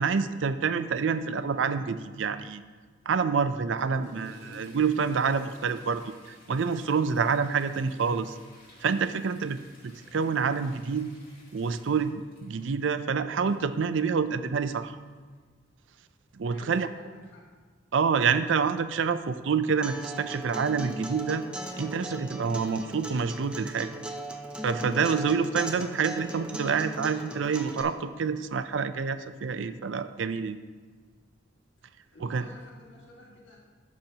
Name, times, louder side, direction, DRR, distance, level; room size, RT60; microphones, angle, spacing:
voice 1, 0.0-2.6 3.1-8.4 8.8-9.6 9.8-11.1 11.5-14.9 16.3-16.9 17.9-21.4 21.8-23.9 24.6-30.6 32.2-32.4, right 5 dB, 80° right, 11 dB, 0.5 m, -27 dB
Toilet flush, 3.4-15.4 17.2-17.3 17.7-17.8 18.5-18.6 19.3-19.5 20.0-20.1, left 1 dB, 50° left, 2.4 m, -54 dB
voice 2, 16.5-17.4 32.1-33.6, left 1 dB, 70° left, -4 dB, 1.9 m, -50 dB
Acoustic guitar, 19.8-27.8, right 1 dB, 5° right, 0.6 m, -38 dB
12.0 x 7.5 x 2.9 m, 1.5 s
head